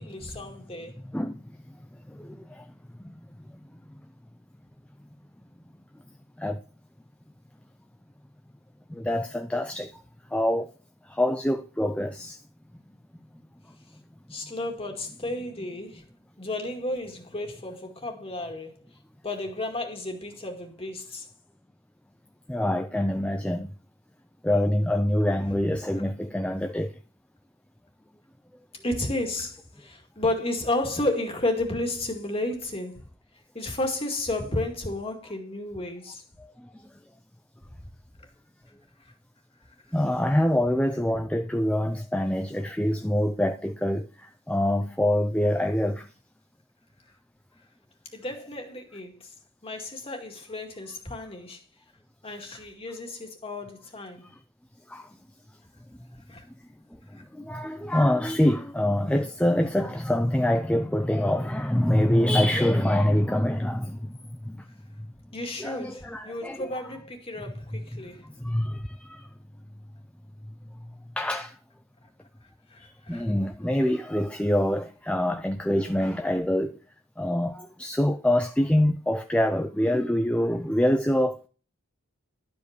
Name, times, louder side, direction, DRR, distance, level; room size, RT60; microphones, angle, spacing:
voice 1, 0.0-0.9 14.3-16.0 16.4-18.7 19.2-21.3 28.8-33.0 33.5-36.2 48.1-49.1 49.6-51.6 52.2-54.2 56.3-56.4 65.3-68.2 72.7-73.2, left 2 dB, 25° left, 2.0 m, -32 dB
voice 2, 2.1-2.6 6.4-6.6 8.9-9.9 10.3-10.7 11.1-12.4 22.5-23.7 24.4-26.9 39.9-44.1 44.5-46.1 54.9-55.0 57.3-64.1 64.5-64.6 65.6-66.8 67.6-68.0 68.4-69.2 71.2-71.5 73.1-76.8 77.2-81.4, left 1 dB, 5° left, 0.4 m, -25 dB
12.0 x 5.2 x 6.6 m
head